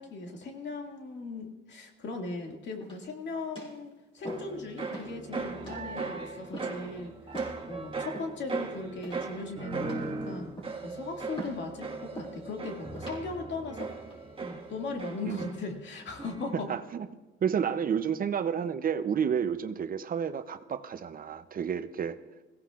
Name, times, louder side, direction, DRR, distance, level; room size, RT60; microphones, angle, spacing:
voice 1, 0.0-7.1 7.7-10.5 10.8-13.9 14.4-16.7, left 3 dB, 65° left, 2 dB, 2.1 m, -38 dB
sound 1, 2.8-3.2 3.6-3.8 4.2-4.6 4.9-5.2 5.6-5.8 6.5-6.8 7.3-7.6 8.1-8.6 9.0-9.4 9.8-10.1 10.6-10.9 11.4-11.6 12.2-12.4 12.9-13.2 13.9-14.2, right 1 dB, 25° left, 6.0 m, -43 dB
sound 2, 4.3-15.9 16.2-16.7, right 4 dB, 25° right, 1.6 m, -38 dB
voice 2, 16.5-17.1 17.4-22.2, right 7 dB, 45° right, 11 dB, 0.6 m, -30 dB
21.5 x 16.5 x 2.4 m, 1.2 s
cardioid pair, 90°, 20 cm